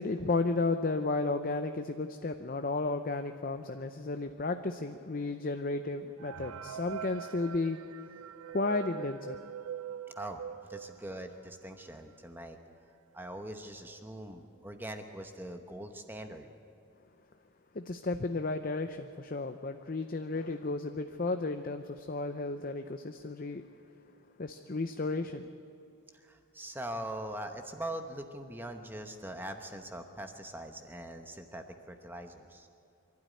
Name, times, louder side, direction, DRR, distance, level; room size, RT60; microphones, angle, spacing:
voice 1, 0.0-7.8 8.5-9.4 17.7-23.6 24.4-25.4, left 3 dB, 40° left, 7 dB, 0.6 m, -33 dB
sound 1, 6.2-11.6 12.1-12.2 12.4-12.5 13.2-13.3 13.7-14.0, right 9 dB, 85° right, 0.5 m, -44 dB
voice 2, 10.7-12.6 13.1-16.5 26.1-32.7, right 1 dB, 10° right, 5 dB, 1.0 m, -42 dB
25.0 x 12.5 x 9.6 m, 2.6 s
head